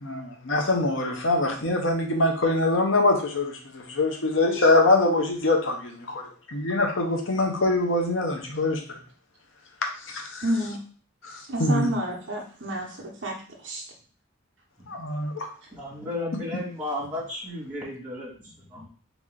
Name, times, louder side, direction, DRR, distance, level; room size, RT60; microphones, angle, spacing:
voice 1, 0.0-8.8 10.1-10.4 11.6-11.9 14.9-15.5, left 2 dB, 75° left, 2 dB, 0.9 m, -24 dB
voice 2, 10.4-10.8 11.5-13.4 13.6-13.8, right 1 dB, 65° right, -2 dB, 1.0 m, -29 dB
voice 3, 15.7-18.9, left 1 dB, 10° right, -8 dB, 2.2 m, -34 dB
4.2 x 3.0 x 3.7 m, 0.42 s
head